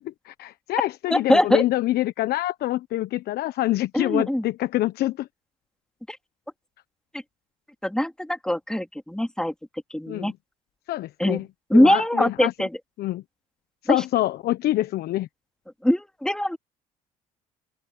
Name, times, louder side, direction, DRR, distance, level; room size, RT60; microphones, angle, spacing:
voice 1, 0.0-5.3 10.1-10.3 10.9-11.5 11.7-12.5 13.0-13.2 13.8-15.3, left 15 dB, 65° left, 1.2 m, -26 dB
voice 2, 1.1-1.6 3.9-4.4 6.1-6.2 7.8-9.5 9.9-10.3 11.2-11.4 11.7-12.7 13.9-14.0 15.8-16.6, left 1 dB, 5° left, 3.2 m, -22 dB
open air
hypercardioid pair, 65°, 18 cm